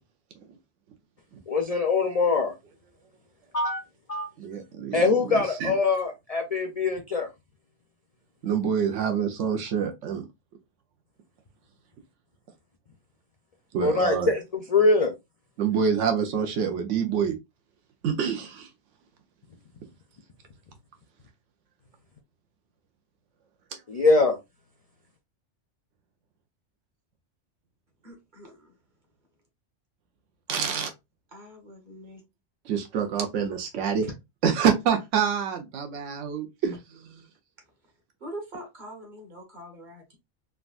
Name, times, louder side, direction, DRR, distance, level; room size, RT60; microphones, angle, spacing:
voice 1, 1.5-2.5 3.5-3.8 4.1-4.3 4.9-7.3 13.8-15.1 23.9-24.4, left 3 dB, 55° left, 0.4 m, -23 dB
voice 2, 4.4-5.7 8.4-10.2 13.7-14.3 15.6-17.4 18.0-18.7 30.5-30.9 32.7-34.1 34.4-37.0, right 7 dB, 85° right, 1.0 m, -26 dB
voice 3, 28.0-28.7 31.3-32.2 38.2-40.2, right 1 dB, 45° right, 1.2 m, -43 dB
3.6 x 2.3 x 2.3 m
omnidirectional pair, 1.2 m